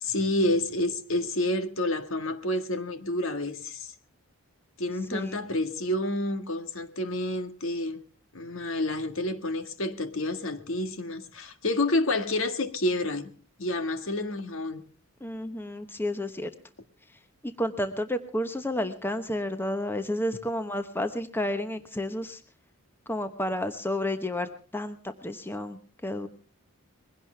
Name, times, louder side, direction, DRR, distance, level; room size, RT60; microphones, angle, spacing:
voice 1, 0.0-3.9 4.8-8.0 8.3-13.3 13.6-14.9, left 1 dB, 60° left, 1.7 m, -29 dB
voice 2, 15.2-16.5 17.4-22.4 23.1-25.0 25.2-26.3, left 1 dB, 10° left, 1.1 m, -31 dB
22.0 x 17.0 x 3.4 m
head